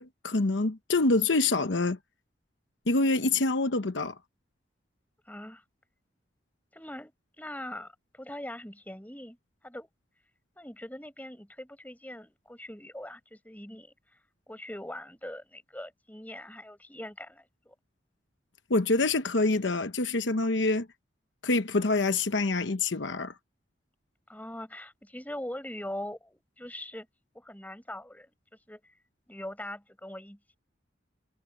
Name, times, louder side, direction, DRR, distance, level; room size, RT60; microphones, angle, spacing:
voice 1, 0.0-2.0 2.9-4.1 18.7-20.9 21.4-23.3, left 3 dB, 80° left, 1.0 m, -26 dB
voice 2, 5.3-5.6 6.7-7.1 7.4-9.4 9.6-9.9 10.6-13.9 14.5-17.7 24.3-27.1 27.3-28.3 28.7-28.8 29.3-30.6, left 1 dB, 10° left, 7.9 m, -42 dB
head